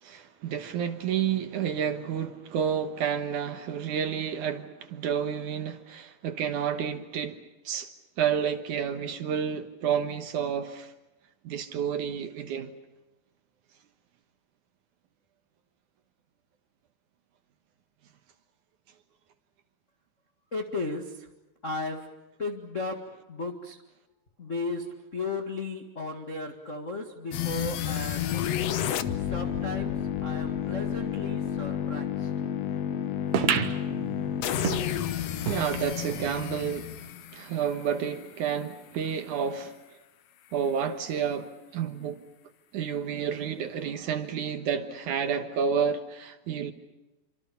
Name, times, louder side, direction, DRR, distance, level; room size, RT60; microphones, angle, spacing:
voice 1, 0.0-7.4 7.6-7.9 8.2-10.9 11.4-12.7 35.4-37.0 37.3-39.8 40.5-42.2 42.7-46.7, right 7 dB, 65° right, 2.4 m, -30 dB
voice 2, 20.5-21.3 21.6-22.1 22.4-23.0 23.3-23.8 24.4-24.9 25.1-28.5 29.3-30.0 30.2-32.3, left 3 dB, 35° left, 1.2 m, -35 dB
sound 1, 27.3-38.3, left 10 dB, 75° left, 1.5 m, -31 dB
sound 2, 33.3-36.3 36.7-36.8 37.0-37.1 37.9-38.0, right 10 dB, 85° right, 3.5 m, -31 dB
27.5 x 26.0 x 7.0 m
omnidirectional pair, 4.4 m